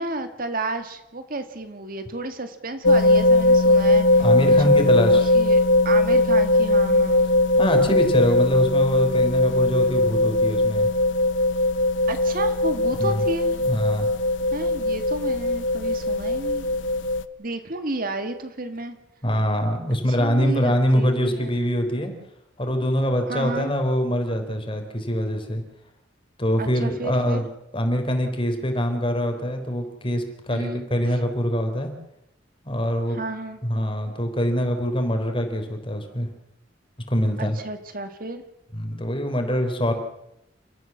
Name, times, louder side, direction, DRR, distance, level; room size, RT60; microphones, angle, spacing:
voice 1, 0.0-4.8 5.1-7.3 12.1-13.6 14.5-16.7 17.4-19.0 20.1-21.5 23.3-23.7 26.6-27.5 30.5-30.9 33.1-33.6 37.4-38.4, right 2 dB, 50° right, 8 dB, 2.0 m, -32 dB
sound 1, 2.8-17.2, left 2 dB, 80° left, 0.8 m, -20 dB
voice 2, 4.2-5.3 7.6-10.9 13.0-13.2 13.6-14.1 19.2-22.1 22.6-25.6 26.4-27.5 27.7-31.9 32.6-33.2 33.6-36.3 37.1-37.6 38.7-39.9, equal, 30° left, 5 dB, 3.9 m, -24 dB
29.5 x 14.5 x 7.3 m, 0.81 s
head